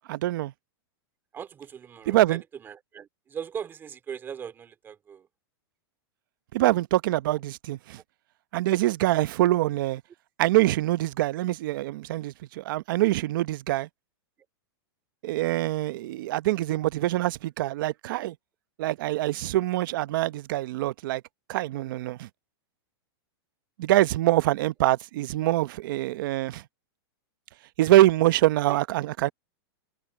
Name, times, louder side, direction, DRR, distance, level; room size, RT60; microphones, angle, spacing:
voice 1, 0.1-0.5 2.1-2.4 6.5-8.0 8.5-10.0 10.4-13.9 15.2-18.3 18.8-21.2 21.5-22.3 23.8-26.6 27.8-29.3, right 15 dB, 55° right, 0.8 m, -24 dB
voice 2, 1.3-5.3 8.0-8.1 28.7-28.8, right 7 dB, 15° right, 2.5 m, -39 dB
supercardioid pair, 160°, 13 cm